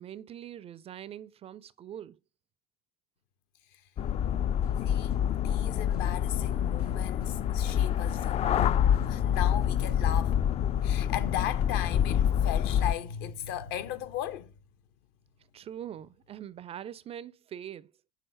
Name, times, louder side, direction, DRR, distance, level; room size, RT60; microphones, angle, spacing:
voice 1, 0.0-2.2 15.5-17.9, right 10 dB, 30° right, 0.4 m, -43 dB
sound 1, 4.0-12.9, left 9 dB, 35° left, 0.4 m, -27 dB
sound 2, 4.6-10.6, left 7 dB, 85° left, 0.6 m, -47 dB
voice 2, 4.8-10.4 10.7-14.5, left 10 dB, 60° left, 1.0 m, -37 dB
6.6 x 3.7 x 6.3 m
hypercardioid pair, 70°, 19 cm